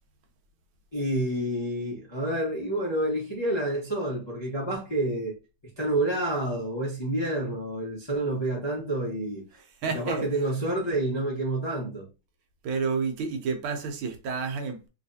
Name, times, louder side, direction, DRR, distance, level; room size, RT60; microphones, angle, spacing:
voice 1, 0.9-5.4 5.8-9.4 9.9-12.1, right 1 dB, 30° left, 0.4 m, -28 dB
voice 2, 9.8-10.2 12.6-14.9, right 5 dB, 75° right, 1.5 m, -30 dB
3.2 x 3.1 x 2.7 m
omnidirectional pair, 2.3 m